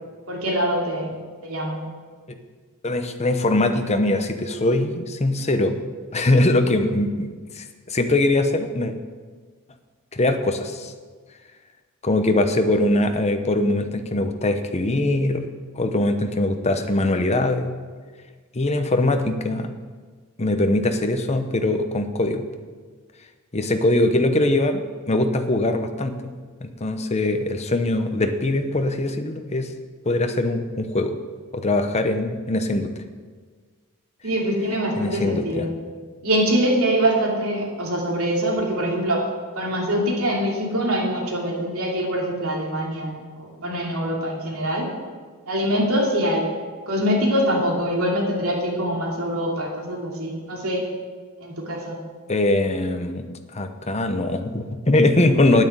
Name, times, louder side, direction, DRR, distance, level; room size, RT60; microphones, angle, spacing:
voice 1, 0.3-1.1 1.4-1.8 34.2-35.7 36.2-39.2 39.5-44.9 45.4-46.4 46.9-50.8 51.4-52.0, equal, 75° right, -1 dB, 2.8 m, -24 dB
voice 2, 2.8-5.8 6.1-8.9 10.1-10.9 12.0-15.4 15.8-17.7 18.5-19.7 20.4-22.4 23.5-26.3 26.6-29.7 30.0-31.2 31.5-32.9 35.0-35.7 52.3-53.2 53.5-55.6, left 2 dB, 30° left, 7 dB, 0.9 m, -22 dB
9.5 x 9.3 x 8.0 m, 1.5 s
head